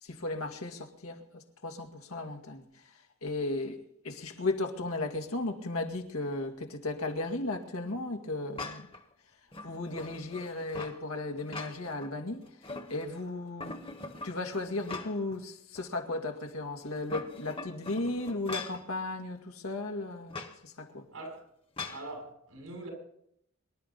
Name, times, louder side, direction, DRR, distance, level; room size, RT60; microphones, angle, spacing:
voice 1, 0.0-8.9 9.6-12.6 12.9-13.8 14.2-21.1, left 2 dB, 90° left, 2.2 m, -35 dB
sound 1, 8.6-9.0 9.5-11.0 11.4-12.1 12.4-13.2 13.6-15.4 15.8-15.9 16.9-18.9 20.3-20.6 21.8-22.1, left 3 dB, 25° left, 1.3 m, -42 dB
voice 2, 21.1-21.4 21.9-22.9, right 2 dB, 90° right, 6.8 m, -42 dB
25.5 x 11.5 x 4.1 m
head